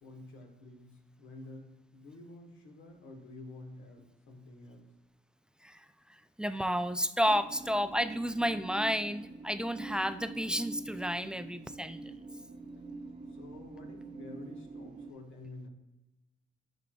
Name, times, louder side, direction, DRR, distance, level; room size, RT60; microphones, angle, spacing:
voice 1, 0.0-4.9 13.3-15.7, left 2 dB, 85° left, 2 dB, 1.4 m, -49 dB
voice 2, 5.6-12.1, equal, 5° right, 11 dB, 0.3 m, -32 dB
sound 1, 7.2-15.1, right 3 dB, 35° right, 0.7 m, -46 dB
10.5 x 4.7 x 2.3 m, 0.99 s
cardioid pair, 90°, 20 cm